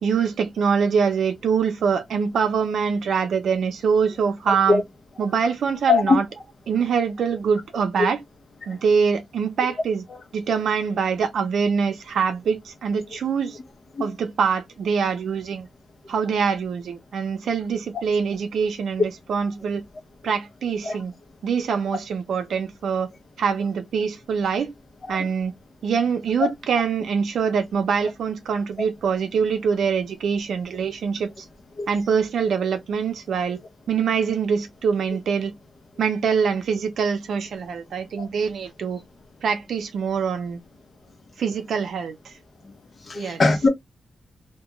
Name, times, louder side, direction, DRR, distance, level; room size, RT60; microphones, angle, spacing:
voice 1, 0.0-4.8 5.2-6.3 6.7-8.2 8.7-10.1 10.3-13.6 14.0-15.7 16.1-19.8 20.2-21.1 21.4-23.1 23.4-24.7 25.1-25.5 25.8-31.4 31.9-33.6 33.9-35.5 36.0-39.0 39.4-40.6 41.4-42.3 43.1-43.4, right 6 dB, 80° right, 0.6 m, -24 dB
voice 2, 43.2-43.7, left 4 dB, 45° left, 0.7 m, -18 dB
2.2 x 2.2 x 2.8 m
cardioid pair, 100°, 0 cm